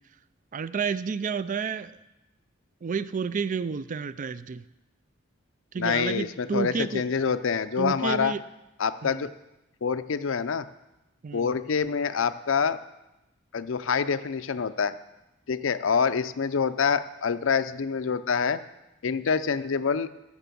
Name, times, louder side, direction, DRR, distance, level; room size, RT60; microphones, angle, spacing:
voice 1, 0.5-1.9 2.8-4.7 5.7-7.0 7.8-8.4 9.0-9.3 11.2-11.5, right 5 dB, 40° right, 16 dB, 0.4 m, -30 dB
voice 2, 5.8-8.3 8.8-9.3 9.8-10.6 11.3-12.8 13.5-15.0 15.5-18.6 19.0-20.1, left 6 dB, 70° left, 13 dB, 0.5 m, -26 dB
15.0 x 6.0 x 6.9 m, 0.98 s
head